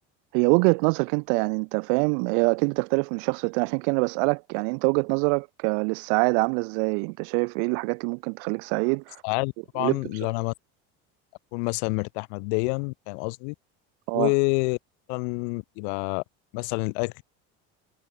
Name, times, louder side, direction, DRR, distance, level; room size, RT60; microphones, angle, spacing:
voice 1, 0.3-9.2 9.8-10.0 14.1-14.3, right 40 dB or more, 80° right, 1.7 m, -24 dB
voice 2, 9.2-10.5 11.5-13.5 14.1-14.8 15.1-16.2 16.5-17.2, left 39 dB, 80° left, 3.4 m, -27 dB
cardioid pair, 175°, 32 cm